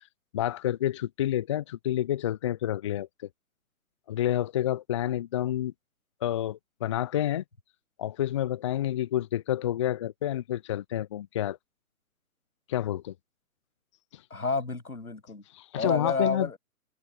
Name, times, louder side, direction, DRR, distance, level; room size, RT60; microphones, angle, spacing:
voice 1, 0.3-3.1 4.1-5.7 6.2-7.4 8.0-11.6 12.7-13.1 14.1-14.2 15.5-16.5, left 12 dB, 20° left, 0.6 m, -29 dB
voice 2, 14.3-15.4 15.7-16.6, left 4 dB, 85° left, 7.8 m, -30 dB
figure-of-eight pair, 135°, 43 cm